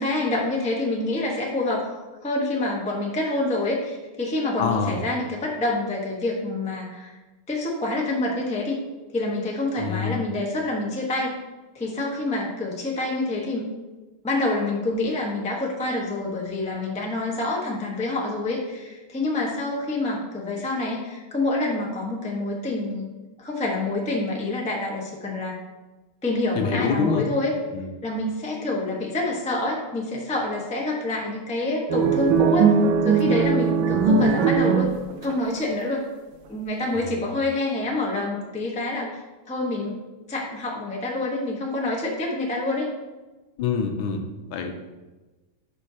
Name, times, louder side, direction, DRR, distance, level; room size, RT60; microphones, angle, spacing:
voice 1, 0.0-7.1 7.5-8.8 9.1-11.4 11.7-13.7 14.2-23.1 23.4-25.6 26.2-27.5 28.0-32.7 33.0-34.9 35.2-36.0 36.5-40.0 40.3-42.9, left 2 dB, 5° left, -2 dB, 0.5 m, -27 dB
voice 2, 4.6-5.0 9.8-10.2 26.6-27.3 27.7-27.9 36.9-37.3 43.6-44.2 44.5-44.8, left 6 dB, 75° left, 5 dB, 1.4 m, -26 dB
sound 1, 31.9-35.3, right 5 dB, 75° right, 1.3 m, -20 dB
11.0 x 5.4 x 2.8 m, 1.2 s
omnidirectional pair, 2.4 m